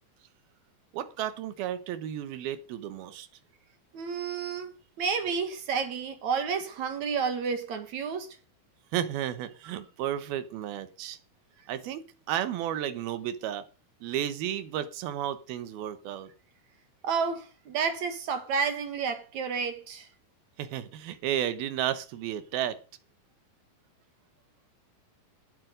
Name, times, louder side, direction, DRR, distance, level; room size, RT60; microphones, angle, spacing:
voice 1, 0.9-3.3 8.9-11.2 11.7-13.7 14.0-16.3 20.6-22.8, right 11 dB, 85° right, 3.1 m, -33 dB
voice 2, 3.9-4.7 5.0-8.4 17.0-20.1, right 6 dB, 55° right, 2.8 m, -30 dB
16.0 x 7.9 x 5.2 m
omnidirectional pair, 4.3 m